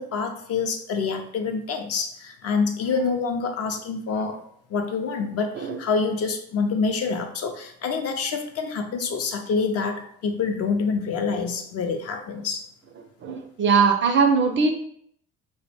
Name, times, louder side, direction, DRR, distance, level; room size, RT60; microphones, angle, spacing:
voice 1, 0.0-4.4 4.7-12.6, left 5 dB, 45° left, 5 dB, 0.5 m, -26 dB
voice 2, 13.2-14.7, right 5 dB, 35° right, 5 dB, 0.4 m, -20 dB
2.1 x 2.0 x 3.2 m, 0.67 s
hypercardioid pair, 60°, 35 cm